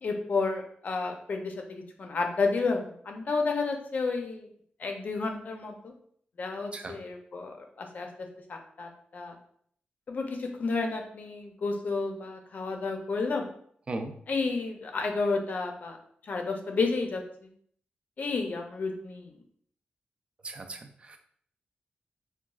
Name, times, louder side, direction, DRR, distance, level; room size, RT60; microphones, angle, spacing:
voice 1, 0.0-4.5 4.8-5.9 6.4-9.4 10.1-13.5 14.3-16.0 16.3-17.2 18.2-19.3, left 4 dB, 50° left, 3 dB, 0.5 m, -31 dB
voice 2, 20.4-21.2, right 2 dB, 35° right, 6 dB, 0.3 m, -37 dB
4.0 x 2.2 x 2.3 m, 0.62 s
wide cardioid pair, 160°, 3 cm